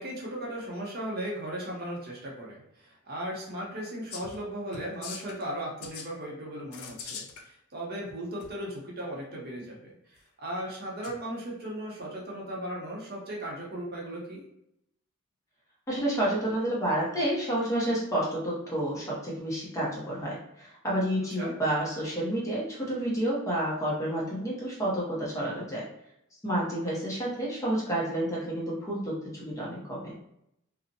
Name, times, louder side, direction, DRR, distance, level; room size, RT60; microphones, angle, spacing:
voice 1, 0.0-14.4 21.4-21.5, right 1 dB, 45° right, -3 dB, 0.7 m, -37 dB
sound 1, 4.1-4.4 4.7-5.4 5.8-6.1 6.7-7.4 8.4-8.5 11.0-11.2, left 6 dB, 85° left, 0.4 m, -41 dB
voice 2, 15.9-25.8 26.4-30.1, right 1 dB, 15° left, -5 dB, 0.6 m, -30 dB
2.5 x 2.0 x 2.6 m, 0.78 s
head